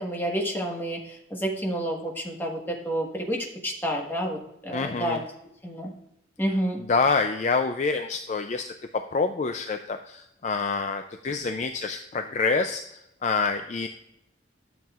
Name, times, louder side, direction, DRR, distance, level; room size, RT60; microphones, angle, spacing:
voice 1, 0.0-3.4 3.6-4.4 4.6-5.2 5.6-5.9 6.4-6.8, right 1 dB, 10° left, -1 dB, 1.4 m, -29 dB
voice 2, 4.7-5.2 6.5-13.9, left 4 dB, 40° left, 7 dB, 0.4 m, -27 dB
12.0 x 7.2 x 2.4 m, 0.81 s
head